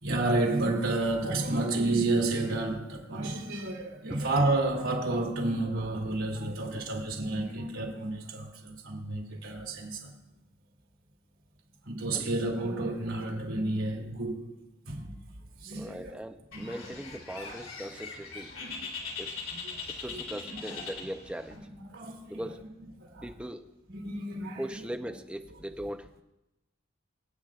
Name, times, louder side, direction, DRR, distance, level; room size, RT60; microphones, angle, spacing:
voice 1, 0.0-10.1 11.8-14.6 14.9-15.2 15.6-16.2 16.5-17.0 17.3-17.6 18.5-18.9 19.5-19.8 20.1-20.6 21.5-21.6 21.9-22.4 23.0-23.3 23.9-24.8, right 2 dB, 80° right, 2.9 m, -31 dB
voice 2, 6.7-7.3 12.1-12.3 15.8-18.5 19.2-19.3 19.9-21.6 22.3-22.7 23.2-23.6 24.6-26.1, equal, 5° right, 0.6 m, -40 dB
Bird, 16.5-21.6, left 4 dB, 70° left, 3.3 m, -41 dB
26.0 x 8.8 x 2.4 m
head